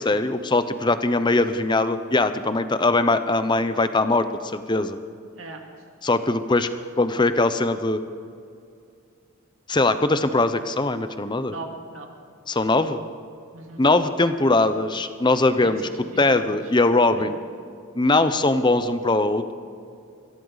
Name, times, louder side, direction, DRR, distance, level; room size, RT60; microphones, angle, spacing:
voice 1, 0.0-4.3 4.5-5.0 6.0-6.7 7.0-8.0 9.7-11.5 12.5-13.0 13.8-15.9 16.2-17.4 17.9-19.5, left 2 dB, 20° left, 11 dB, 0.7 m, -21 dB
voice 2, 11.5-12.1 13.5-13.8 15.6-16.6 17.2-17.3, right 2 dB, 65° right, 2 dB, 2.4 m, -39 dB
23.0 x 16.0 x 4.0 m, 2.4 s
head